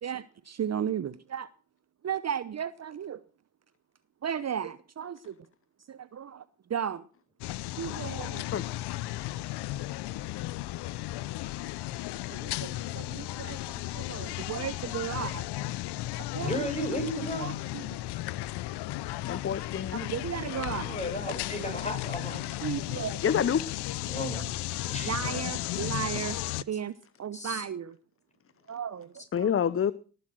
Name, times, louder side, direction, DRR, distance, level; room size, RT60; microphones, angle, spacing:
voice 1, 0.0-1.5 2.0-3.2 4.2-5.3 5.9-6.4 6.7-7.0 7.8-8.6 12.3-15.4 16.3-17.0 17.4-18.0 19.9-21.0 22.6-23.2 25.0-26.4 26.7-26.9 27.2-27.9 28.7-29.5, right 8 dB, 35° right, 0.8 m, -35 dB
sound 1, 7.4-26.6, left 16 dB, 65° left, 0.8 m, -35 dB
voice 2, 16.4-17.5 20.8-22.5 24.1-24.5 24.8-25.1 27.3-27.7, left 1 dB, 15° left, 7.3 m, -34 dB
voice 3, 19.3-20.0 23.2-23.6 29.3-29.9, left 8 dB, 30° left, 0.8 m, -27 dB
19.0 x 8.2 x 6.3 m
hypercardioid pair, 50°, 43 cm